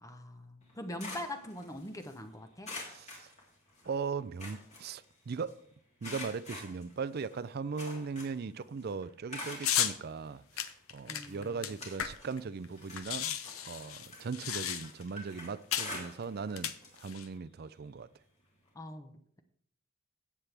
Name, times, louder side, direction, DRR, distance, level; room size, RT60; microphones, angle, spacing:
voice 1, 0.0-2.7 11.1-11.7 18.7-19.4, left 1 dB, 15° left, 0.8 m, -43 dB
sound 1, 0.6-2.2 2.6-3.9 4.2-5.5 6.0-8.5 8.8-9.9 10.6-10.7 11.2-12.4 12.7-16.5 16.8-17.0 17.4-17.5 18.7-18.8, left 2 dB, 35° left, 2.9 m, -46 dB
voice 2, 2.9-3.3 3.8-5.6 6.0-18.1, right 5 dB, 50° right, 0.4 m, -39 dB
sound 2, 9.6-10.0 10.6-12.4 12.6-12.7 12.9-15.1 15.7-16.0 16.5-17.3, left 10 dB, 85° left, 0.8 m, -34 dB
16.0 x 7.4 x 3.4 m
head